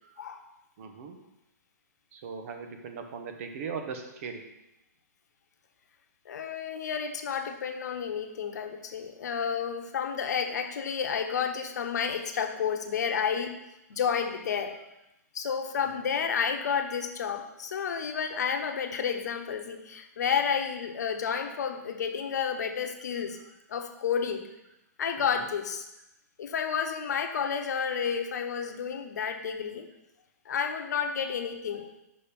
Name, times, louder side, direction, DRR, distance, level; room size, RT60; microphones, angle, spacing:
voice 1, 0.2-0.5 6.2-13.6 13.9-14.7 15.3-23.4 23.7-24.5 25.0-25.8 26.4-29.9 30.4-32.0, left 7 dB, 70° left, 6 dB, 1.0 m, -31 dB
voice 2, 0.8-1.2 2.1-4.4 25.2-25.5, right 5 dB, 50° right, 5 dB, 1.3 m, -39 dB
6.7 x 5.3 x 5.3 m, 0.91 s
hypercardioid pair, 135°, 9 cm